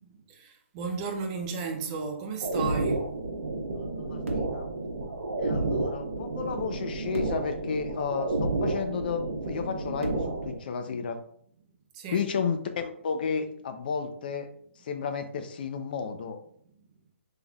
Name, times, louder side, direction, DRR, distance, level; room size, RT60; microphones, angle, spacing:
voice 1, 0.0-3.0 11.9-12.3, right 5 dB, 25° right, 0.6 m, -34 dB
sound 1, 2.4-10.6, right 2 dB, 75° right, 1.1 m, -31 dB
voice 2, 3.7-4.7 5.4-11.2 12.1-14.5 14.8-16.4, left 6 dB, 40° left, 0.6 m, -32 dB
5.4 x 3.4 x 2.3 m
hypercardioid pair, 160°, 7 cm